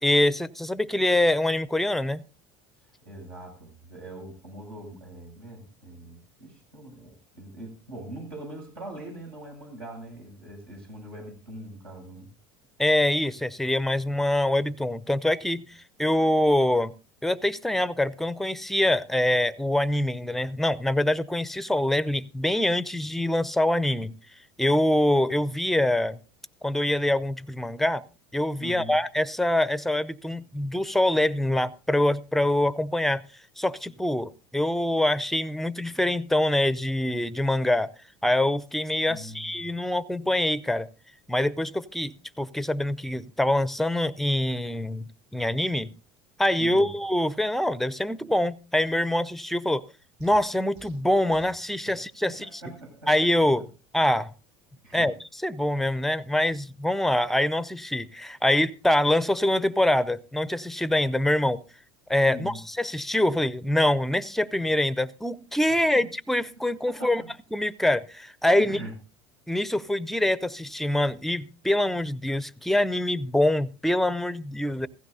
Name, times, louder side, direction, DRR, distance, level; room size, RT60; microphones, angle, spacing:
voice 1, 0.0-2.2 12.8-15.6 16.0-16.9 17.2-24.1 24.6-26.2 26.6-28.0 28.3-33.2 33.6-37.9 38.2-40.9 41.3-45.9 46.4-49.8 50.2-52.4 53.1-53.6 53.9-54.3 54.9-55.1 55.4-61.6 62.1-67.2 67.5-68.8 69.5-74.9, left 1 dB, ahead, 0.5 m, -24 dB
voice 2, 3.0-12.3 28.6-29.0 39.1-39.6 46.6-46.9 51.9-52.0 52.2-53.1 53.6-53.7 54.8-55.1 62.2-62.6 65.9-66.1 66.9-67.3 68.6-68.9 74.7-74.8, right 1 dB, 85° right, 7.9 m, -42 dB
sound 1, 50.2-51.7, right 6 dB, 45° right, 6.0 m, -52 dB
16.5 x 15.0 x 2.7 m
hypercardioid pair, 85°, 12 cm